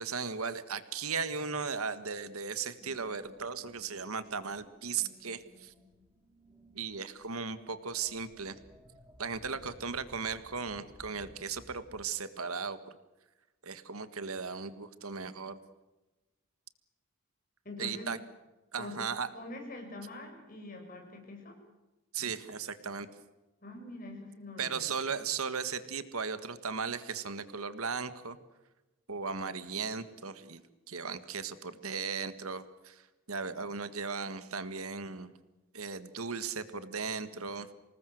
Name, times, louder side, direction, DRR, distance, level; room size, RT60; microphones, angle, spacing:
voice 1, 0.0-5.7 6.7-8.6 9.2-12.8 13.6-15.6 17.8-18.2 18.7-19.3 22.1-23.1 24.6-28.4 29.1-30.6 30.9-33.0 33.3-35.3 35.7-37.7, right 5 dB, 85° right, 12 dB, 1.7 m, -36 dB
sound 1, 2.8-12.0, equal, 15° right, 2.4 m, -58 dB
voice 2, 17.6-18.1 18.7-19.0 19.3-21.6 23.6-25.2, left 2 dB, 40° left, 2 dB, 7.0 m, -44 dB
26.0 x 19.5 x 7.8 m, 1.1 s
head